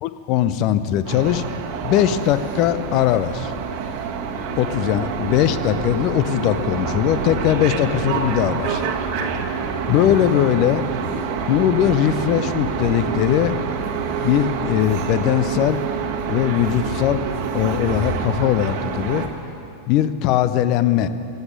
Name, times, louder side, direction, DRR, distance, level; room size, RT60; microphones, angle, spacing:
voice 1, 0.0-1.4 1.8-3.5 4.6-8.9 9.9-10.8 11.5-13.5 14.2-15.8 16.3-17.2 17.5-19.3 19.9-21.1, left 11 dB, 40° left, 12 dB, 0.6 m, -20 dB
sound 1, 1.1-19.3, right 6 dB, 45° right, 1.3 m, -27 dB
16.0 x 8.0 x 8.8 m, 2.7 s
figure-of-eight pair, 90°, 0 cm